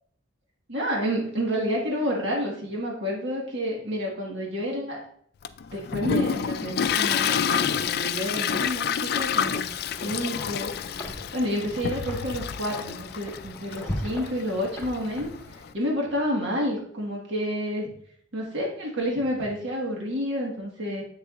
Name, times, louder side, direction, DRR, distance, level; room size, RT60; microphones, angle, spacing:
voice 1, 0.7-5.0 5.7-9.7 10.0-10.7 11.3-15.3 15.7-17.9 18.3-21.0, equal, 65° right, -2 dB, 1.7 m, -29 dB
Toilet flush, 5.4-15.7, left 7 dB, 50° left, 0.3 m, -29 dB
Wind, 9.4-15.8, equal, 10° left, 1.6 m, -40 dB
8.0 x 6.8 x 2.5 m, 0.66 s
head